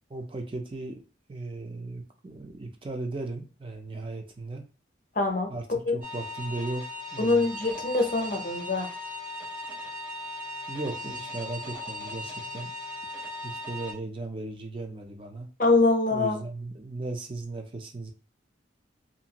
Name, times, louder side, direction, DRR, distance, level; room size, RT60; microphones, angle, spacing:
voice 1, 0.1-1.0 1.3-4.6 5.5-5.7 5.9-6.8 7.1-7.5 10.7-12.7 13.4-15.5 16.1-18.1, right 2 dB, 25° right, 4 dB, 0.4 m, -36 dB
voice 2, 5.2-5.5 5.9-6.0 7.2-8.9 15.6-16.4, left 3 dB, 45° left, 3 dB, 0.6 m, -24 dB
sound 1, 6.0-13.9, left 1 dB, 45° right, 0.9 m, -38 dB
2.6 x 2.4 x 2.8 m, 0.35 s
head